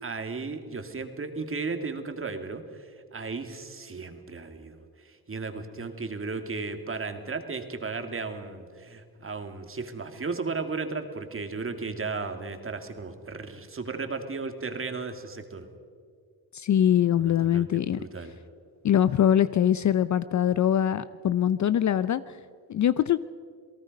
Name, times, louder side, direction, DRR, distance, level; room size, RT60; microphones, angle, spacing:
voice 1, 0.0-15.7 17.2-18.4, right 4 dB, 30° right, 6 dB, 2.2 m, -35 dB
voice 2, 16.5-18.0 18.8-22.4 22.7-23.2, left 10 dB, 40° left, 15 dB, 0.6 m, -23 dB
28.0 x 18.5 x 5.3 m, 2.1 s
cardioid pair, 90°, 43 cm